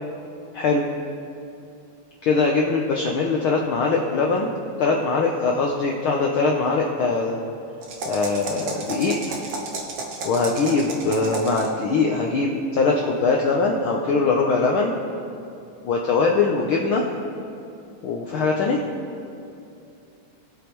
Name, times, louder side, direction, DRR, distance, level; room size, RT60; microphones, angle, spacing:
voice 1, 2.2-4.5 4.8-7.4 8.0-9.2 10.2-14.9 15.8-17.0 18.0-18.8, left 4 dB, 75° left, 0 dB, 1.2 m, -22 dB
sound 1, 7.8-11.8, right 3 dB, 55° right, 1.6 m, -32 dB
22.0 x 8.2 x 3.1 m, 2.7 s
omnidirectional pair, 3.3 m